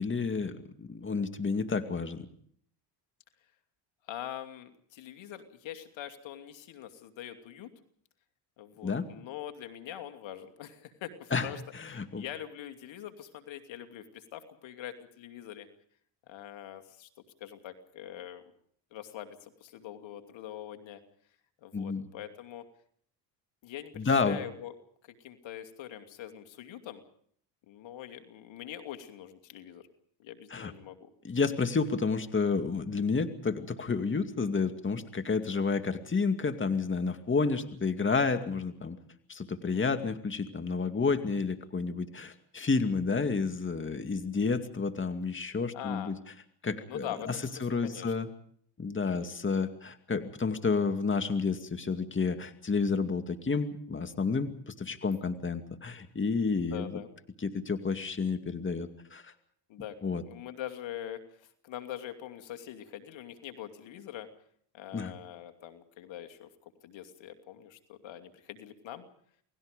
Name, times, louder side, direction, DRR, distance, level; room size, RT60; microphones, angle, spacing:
voice 1, 0.0-2.3 8.8-9.1 11.3-11.5 11.7-12.2 21.7-22.1 24.0-24.4 30.5-30.7 31.2-39.0 39.3-46.2 46.6-47.4 47.6-48.3 48.8-57.0 57.4-59.3 60.0-60.2 64.9-65.1, left 4 dB, 25° left, 8 dB, 2.3 m, -30 dB
voice 2, 4.1-7.7 8.6-11.6 11.9-15.7 16.3-17.1 17.4-18.4 18.9-21.0 21.6-22.6 23.6-24.7 25.1-27.0 27.7-29.9 30.2-31.1 39.7-40.0 45.7-46.1 46.9-48.1 49.1-49.3 49.6-49.7 56.5-57.1 59.7-60.0 60.2-64.3 64.7-69.0, left 11 dB, 65° left, 7 dB, 2.9 m, -43 dB
29.5 x 19.5 x 5.2 m, 0.62 s
supercardioid pair, 80°, 49 cm